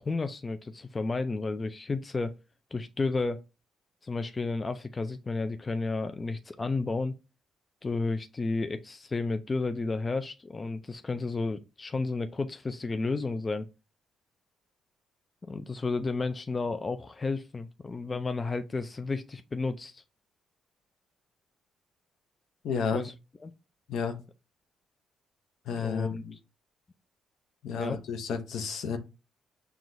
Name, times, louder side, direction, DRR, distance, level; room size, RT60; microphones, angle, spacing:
voice 1, 0.0-2.4 2.7-3.4 4.0-7.1 7.8-13.7 15.4-20.0 22.9-23.1 23.4-23.5 25.8-26.4 27.8-28.0, left 3 dB, 30° left, 0.3 m, -32 dB
voice 2, 22.6-23.0 23.9-24.1 25.7-26.3 27.6-29.0, left 6 dB, 75° left, 0.7 m, -31 dB
6.0 x 2.3 x 2.6 m
cardioid pair, 90°, 0 cm